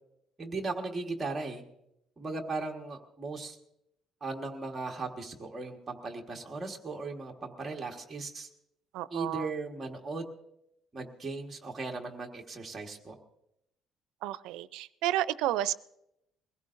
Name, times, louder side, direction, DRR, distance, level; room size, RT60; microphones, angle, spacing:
voice 1, 0.4-1.6 2.2-3.6 4.2-8.5 9.1-10.3 10.9-13.2, right 3 dB, 15° right, 0 dB, 1.4 m, -37 dB
voice 2, 8.9-9.5 14.2-15.7, right 13 dB, 90° right, 15 dB, 0.5 m, -31 dB
22.5 x 16.5 x 2.6 m, 0.82 s
cardioid pair, 175°, 0 cm